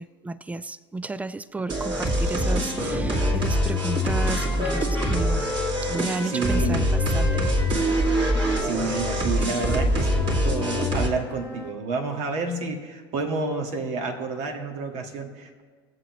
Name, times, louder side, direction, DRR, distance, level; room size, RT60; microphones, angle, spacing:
voice 1, 0.0-5.4 5.8-7.5, right 2 dB, 10° right, 16 dB, 0.4 m, -33 dB
sound 1, 1.7-11.1, equal, 35° right, 2.5 m, -24 dB
Wind instrument woodwind instrument, 2.2-6.6 6.9-11.8, left 2 dB, 15° left, 1.4 m, -36 dB
voice 2, 6.2-6.9 8.6-15.6, right 3 dB, 55° right, 3 dB, 1.8 m, -29 dB
20.5 x 7.8 x 3.1 m, 1.5 s
hypercardioid pair, 80°, 14 cm